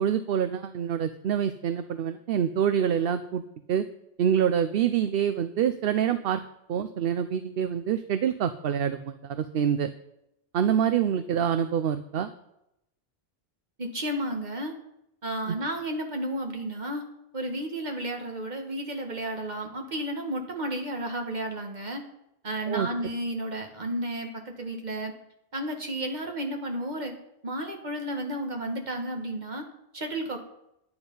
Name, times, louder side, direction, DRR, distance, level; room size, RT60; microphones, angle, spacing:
voice 1, 0.0-3.4 3.7-3.9 4.2-6.4 6.7-9.9 10.5-12.3 15.5-15.6 22.7-22.9, right 8 dB, 70° right, 10 dB, 0.8 m, -26 dB
voice 2, 13.8-14.7 15.2-17.1 17.3-22.0 22.4-25.1 25.5-27.1 27.4-29.7 29.9-30.4, right 1 dB, 45° right, 3 dB, 1.8 m, -32 dB
11.0 x 9.6 x 5.4 m, 0.83 s
omnidirectional pair, 1.0 m